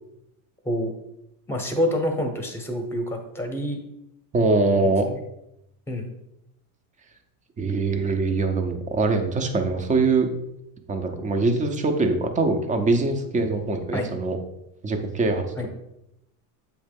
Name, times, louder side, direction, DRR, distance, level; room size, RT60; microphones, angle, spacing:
voice 1, 1.5-3.8 5.1-5.2 5.9-6.1 13.9-14.1 15.6-15.7, left 1 dB, 5° left, 3 dB, 1.0 m, -27 dB
voice 2, 4.3-5.1 7.6-10.3 10.9-14.4 14.8-15.7, right 3 dB, 15° right, 5 dB, 0.6 m, -23 dB
7.8 x 3.2 x 5.2 m, 0.84 s
supercardioid pair, 140°, 46 cm